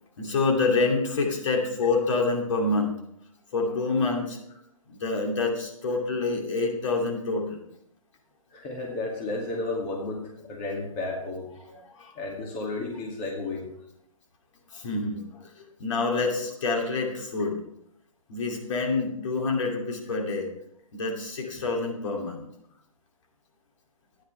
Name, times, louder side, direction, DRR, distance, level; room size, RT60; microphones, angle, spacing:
voice 1, 0.2-2.9 3.5-4.4 4.9-7.6 11.6-12.1 14.7-17.6 18.3-20.5 20.9-22.5, left 3 dB, 60° left, 1 dB, 2.7 m, -27 dB
voice 2, 8.5-11.5 12.1-13.7 21.5-21.6, left 2 dB, 30° left, -1 dB, 2.3 m, -33 dB
13.5 x 9.9 x 3.3 m, 0.76 s
hypercardioid pair, 145°, 18 cm